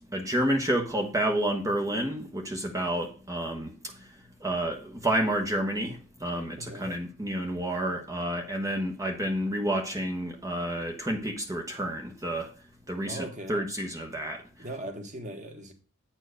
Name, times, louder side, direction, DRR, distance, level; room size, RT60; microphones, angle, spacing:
voice 1, 0.1-3.7 4.4-12.5 12.9-14.4, right 1 dB, 15° right, 1.0 m, -30 dB
voice 2, 6.6-6.9 13.1-13.7 14.6-15.7, right 1 dB, 35° right, 1.8 m, -39 dB
9.3 x 4.5 x 6.2 m
head